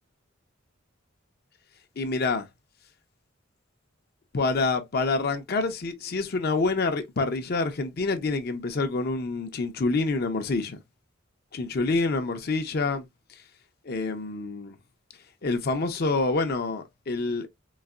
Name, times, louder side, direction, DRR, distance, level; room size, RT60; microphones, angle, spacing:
voice 1, 2.0-2.5 4.3-10.8 11.5-13.0 13.9-14.8 15.4-17.5, left 3 dB, 50° left, 0.6 m, -27 dB
3.9 x 2.5 x 2.3 m
head